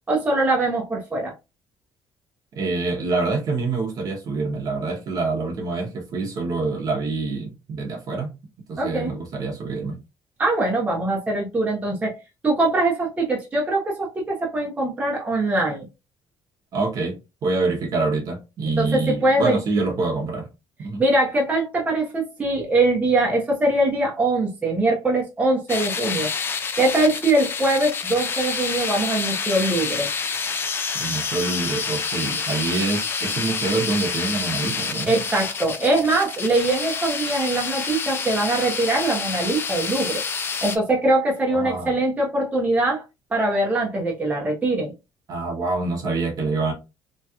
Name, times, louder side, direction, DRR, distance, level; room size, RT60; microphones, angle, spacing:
voice 1, 0.1-1.3 8.8-9.1 10.4-12.1 12.4-15.9 18.8-19.6 21.0-26.3 26.8-30.1 35.1-40.2 40.6-43.0 43.3-44.9, right 2 dB, 15° right, 0.8 m, -22 dB
voice 2, 2.5-8.3 8.7-10.0 16.7-20.5 20.8-21.0 30.9-35.2 41.5-41.9 45.3-46.7, right 3 dB, 45° right, 1.0 m, -26 dB
sound 1, 25.7-40.8, left 5 dB, 25° left, 0.4 m, -28 dB
3.1 x 2.8 x 2.3 m
cardioid pair, 155°, 9 cm